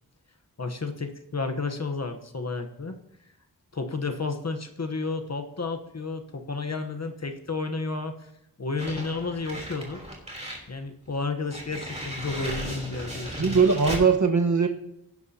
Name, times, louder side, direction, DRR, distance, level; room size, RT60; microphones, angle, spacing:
voice 1, 0.6-3.0 3.7-8.3 8.6-10.0 10.7-13.6, left 3 dB, 45° left, 6 dB, 1.1 m, -32 dB
sound 1, 8.8-10.7 11.1-11.2 11.5-14.1, equal, 15° right, 3.3 m, -36 dB
voice 2, 13.3-14.7, right 5 dB, 50° right, 4 dB, 1.3 m, -20 dB
18.0 x 11.0 x 2.8 m, 0.81 s
wide cardioid pair, 80°, 38 cm